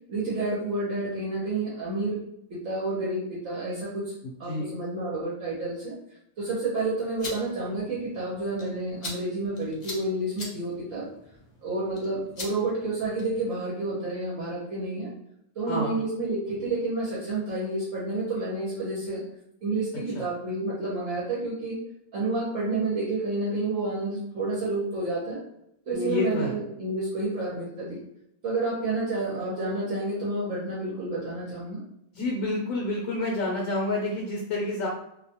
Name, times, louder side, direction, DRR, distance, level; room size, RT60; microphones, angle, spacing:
voice 1, 0.1-2.2 2.5-4.1 4.4-5.9 6.4-11.1 11.6-15.1 15.6-19.2 19.6-21.8 22.1-25.4 25.9-28.0 28.4-31.8, right 2 dB, 65° right, -6 dB, 1.1 m, -30 dB
sound 1, 6.9-13.5, left 2 dB, 55° left, 0.4 m, -43 dB
voice 2, 15.7-16.0 20.1-20.3 25.9-26.5 32.2-34.9, left 2 dB, 70° left, -2 dB, 0.9 m, -28 dB
2.6 x 2.2 x 2.8 m, 0.78 s
omnidirectional pair, 1.6 m